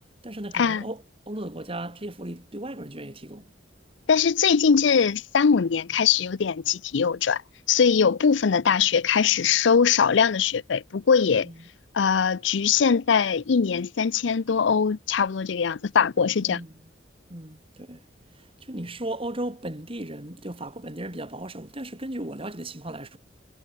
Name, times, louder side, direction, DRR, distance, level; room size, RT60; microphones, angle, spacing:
voice 1, 0.2-3.5 11.4-11.6 16.4-16.7 17.3-18.0 18.3-23.2, right 1 dB, 30° right, 3.0 m, -36 dB
voice 2, 4.1-7.4 7.7-11.5 11.9-16.6, left 6 dB, 70° left, 0.5 m, -21 dB
head